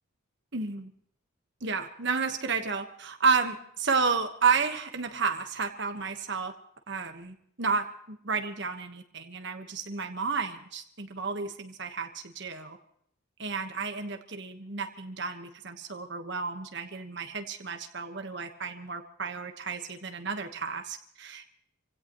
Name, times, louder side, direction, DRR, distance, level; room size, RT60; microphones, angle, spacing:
voice 1, 0.5-0.9 1.6-6.5 6.9-12.8 13.4-21.5, right 5 dB, 55° right, 6 dB, 1.4 m, -31 dB
26.5 x 17.0 x 3.1 m, 0.70 s
head